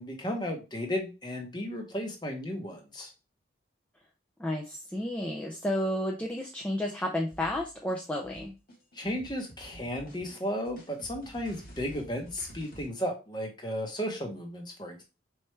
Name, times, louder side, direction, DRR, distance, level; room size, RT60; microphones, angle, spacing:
voice 1, 0.0-3.1 8.9-15.0, equal, 25° left, 3 dB, 0.9 m, -34 dB
voice 2, 4.4-8.5, left 1 dB, 5° left, -1 dB, 0.4 m, -31 dB
sound 1, 7.3-12.9, equal, 50° left, 1.5 m, -50 dB
4.3 x 3.2 x 3.2 m, 0.29 s
head